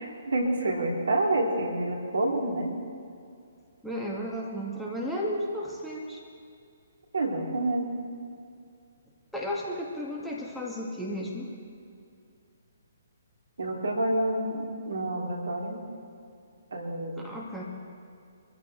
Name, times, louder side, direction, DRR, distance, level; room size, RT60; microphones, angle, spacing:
voice 1, 0.0-2.7 7.1-7.9 13.6-15.8 16.7-17.3, right 1 dB, 70° right, 0 dB, 2.8 m, -28 dB
voice 2, 3.8-6.2 9.3-11.5 17.1-17.6, equal, ahead, -5 dB, 2.1 m, -33 dB
25.0 x 14.5 x 3.4 m, 2.4 s
figure-of-eight pair, 130°, 0 cm